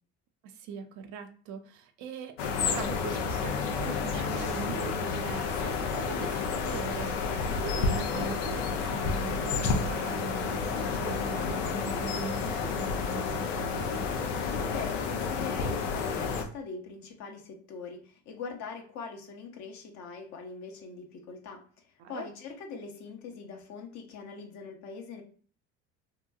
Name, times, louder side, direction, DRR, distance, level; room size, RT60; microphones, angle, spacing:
voice 1, 0.4-14.1 22.0-22.3, right 6 dB, 55° right, 7 dB, 0.5 m, -40 dB
sound 1, 2.4-16.4, left 5 dB, 90° left, 0.6 m, -30 dB
voice 2, 14.7-21.6 22.1-25.2, left 5 dB, 50° left, 3 dB, 0.8 m, -42 dB
2.9 x 2.6 x 2.3 m, 0.42 s
hypercardioid pair, 80°, 35 cm